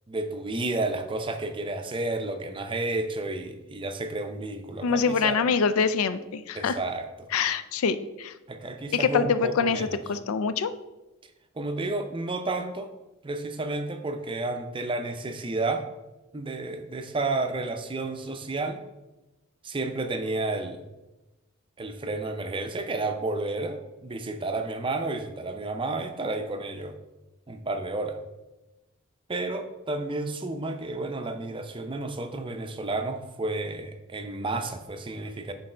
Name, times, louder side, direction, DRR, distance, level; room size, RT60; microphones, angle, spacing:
voice 1, 0.1-5.4 6.5-7.3 8.5-9.9 11.6-12.9 13.2-15.8 16.3-18.8 19.6-20.8 21.8-27.0 27.5-28.2 29.3-35.5, right 2 dB, 25° right, 7 dB, 0.5 m, -31 dB
voice 2, 4.8-6.8 7.3-8.3 8.9-10.7, left 5 dB, 80° left, 13 dB, 0.4 m, -25 dB
6.6 x 4.0 x 4.3 m, 1.1 s
head